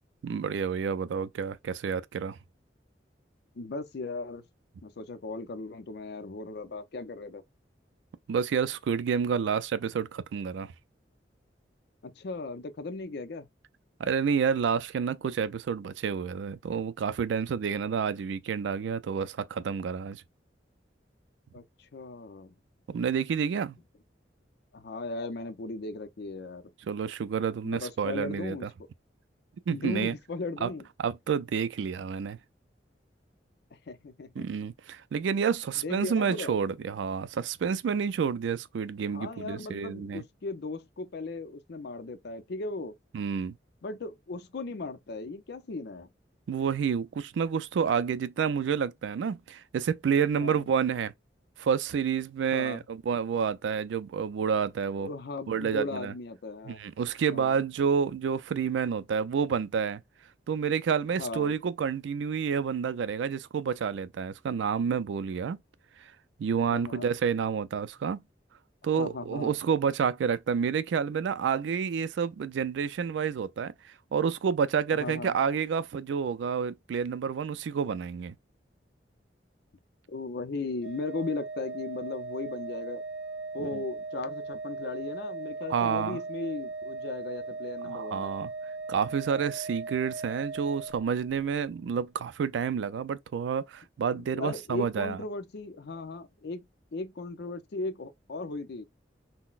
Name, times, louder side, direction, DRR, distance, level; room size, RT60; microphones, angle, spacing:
voice 1, 0.2-2.4 8.3-10.7 14.0-20.2 22.9-23.8 26.9-28.7 29.7-30.1 30.6-30.7 31.0-32.4 34.4-40.2 43.1-43.5 46.5-51.1 51.6-55.1 55.5-56.1 56.7-60.0 60.5-65.6 66.4-68.2 68.8-73.7 74.1-78.3 85.7-86.2 87.9-88.5 88.9-95.2, right 6 dB, 85° right, 0.3 m, -29 dB
voice 2, 3.5-4.4 4.8-7.4 12.0-13.5 21.5-22.5 24.7-26.6 27.6-28.7 29.7-30.9 33.7-34.5 35.8-36.5 39.1-42.9 43.8-46.1 50.4-50.6 52.5-52.8 55.0-56.8 57.3-57.6 61.2-61.5 66.7-67.1 69.0-69.6 74.9-75.4 80.1-83.0 83.5-88.4 94.1-96.7 96.9-98.8, left 3 dB, 65° left, 0.5 m, -37 dB
Organ, 80.8-91.5, right 3 dB, 5° right, 0.8 m, -38 dB
3.8 x 2.1 x 2.3 m
head